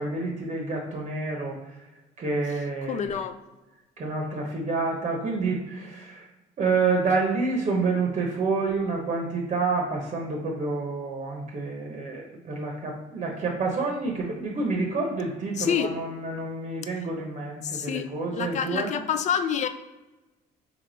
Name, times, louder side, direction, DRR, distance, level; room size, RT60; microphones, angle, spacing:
voice 1, 0.0-1.9 2.2-3.1 4.0-6.3 6.6-18.9, right 3 dB, 40° right, 0.8 m, -28 dB
voice 2, 2.9-3.3 15.6-15.9 17.6-19.7, left 8 dB, 45° left, 0.4 m, -27 dB
3.4 x 3.1 x 3.8 m
cardioid pair, 110°, 17 cm